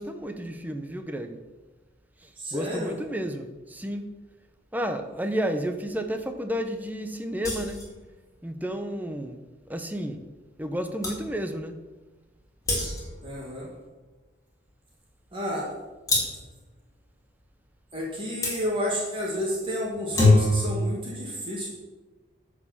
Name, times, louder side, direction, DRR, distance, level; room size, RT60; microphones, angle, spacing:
voice 1, 0.0-1.4 2.2-4.1 4.7-7.9 8.4-9.4 9.7-10.2 10.6-11.8, equal, 10° right, 7 dB, 0.7 m, -31 dB
voice 2, 2.4-3.0 13.2-13.7 15.3-15.7 17.9-21.7, equal, 25° right, -4 dB, 2.0 m, -31 dB
sound 1, 7.4-7.9 10.6-10.7 11.0-11.2 12.6-13.2 16.1-16.5 18.4-18.6 19.9-20.7, left 2 dB, 15° left, 2.6 m, -23 dB
10.0 x 5.1 x 7.2 m, 1.2 s
head